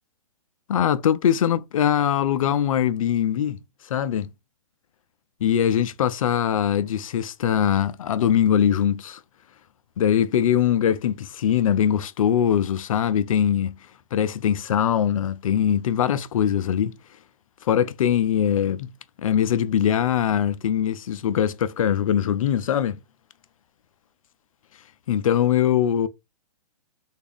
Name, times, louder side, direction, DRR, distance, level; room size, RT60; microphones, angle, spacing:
voice 1, 0.7-4.3 5.4-9.2 10.0-17.0 17.6-18.9 19.2-23.0 25.1-26.1, left 9 dB, 60° left, 0.4 m, -22 dB
3.6 x 2.3 x 3.5 m
hypercardioid pair, 135°, 19 cm